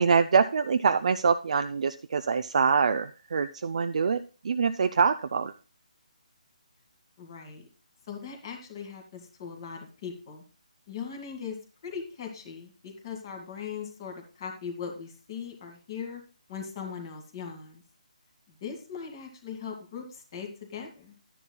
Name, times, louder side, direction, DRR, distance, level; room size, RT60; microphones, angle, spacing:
voice 1, 0.0-5.5, right 5 dB, 55° right, 9 dB, 0.4 m, -25 dB
voice 2, 7.2-7.7 8.1-10.4 10.9-11.6 11.8-16.2 16.5-17.8 18.6-21.1, left 6 dB, 35° left, 3 dB, 2.1 m, -39 dB
11.5 x 9.9 x 2.3 m, 0.34 s
figure-of-eight pair, 160°, 4 cm